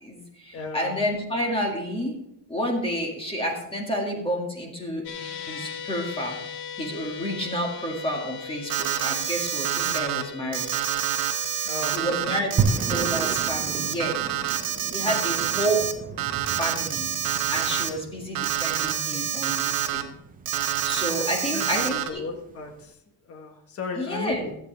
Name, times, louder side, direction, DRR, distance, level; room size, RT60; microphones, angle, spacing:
voice 1, 0.0-2.1 2.5-5.0 5.4-6.4 6.8-10.7 11.9-14.2 14.9-15.9 16.4-17.1 17.5-20.1 20.8-22.3 24.0-24.5, equal, 10° left, 0 dB, 2.0 m, -30 dB
voice 2, 0.5-1.0 9.9-10.2 11.6-12.5 15.0-15.4 21.1-23.0 23.2-24.5, left 3 dB, 35° left, 3 dB, 1.4 m, -36 dB
sound 1, 5.0-17.4, left 7 dB, 65° left, 1.4 m, -41 dB
Alarm, 8.7-10.2 10.5-15.9 16.2-17.9 18.3-20.0 20.4-22.1, right 10 dB, 50° right, 1.0 m, -27 dB
sound 2, 12.6-22.8, right 5 dB, 20° right, 0.5 m, -34 dB
14.5 x 8.4 x 3.4 m, 0.77 s
cardioid pair, 160°, 43 cm